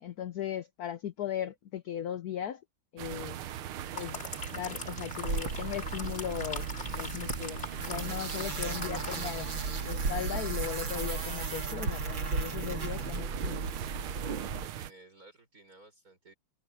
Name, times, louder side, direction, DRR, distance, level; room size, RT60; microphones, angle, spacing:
voice 1, 0.0-2.6 2.9-3.4 3.9-4.2 4.5-9.5 9.8-13.6, left 10 dB, 60° left, 1.1 m, -38 dB
sound 1, 3.0-14.9, right 11 dB, 90° right, 1.8 m, -41 dB
sound 2, 3.6-9.7 10.0-10.2, left 3 dB, 30° left, 2.8 m, -42 dB
sound 3, 5.2-14.7, right 4 dB, 65° right, 3.4 m, -35 dB
voice 2, 14.2-16.3, right 2 dB, 40° right, 5.8 m, -55 dB
omnidirectional pair, 2.3 m